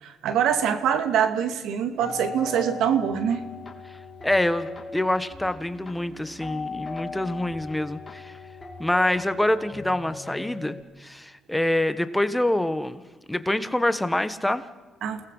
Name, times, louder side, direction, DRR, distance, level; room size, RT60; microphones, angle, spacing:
voice 1, 0.0-3.4 15.0-15.2, right 8 dB, 85° right, 9 dB, 2.0 m, -24 dB
sound 1, 2.0-10.8, left 4 dB, 25° left, 3.1 m, -38 dB
voice 2, 4.2-8.4 8.8-13.0 13.3-14.6, left 1 dB, 10° left, 12 dB, 1.2 m, -26 dB
29.0 x 19.0 x 5.5 m, 1.3 s
cardioid pair, 90°, 0 cm